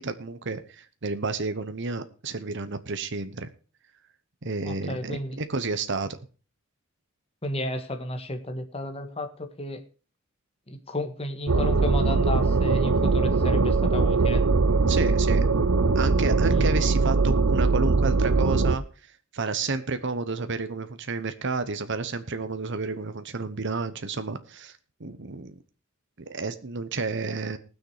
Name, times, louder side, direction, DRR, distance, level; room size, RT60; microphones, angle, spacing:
voice 1, 0.0-3.5 4.4-6.1 14.9-15.5 15.9-18.8 19.3-24.7 25.0-25.5 26.2-27.6, right 3 dB, 60° right, 10 dB, 1.0 m, -31 dB
voice 2, 4.6-5.4 7.4-9.8 10.7-14.4 16.5-16.7, left 1 dB, 30° left, 5 dB, 1.6 m, -32 dB
sound 1, 11.5-18.8, right 3 dB, 80° right, 0.7 m, -21 dB
19.5 x 6.6 x 4.9 m, 0.36 s
head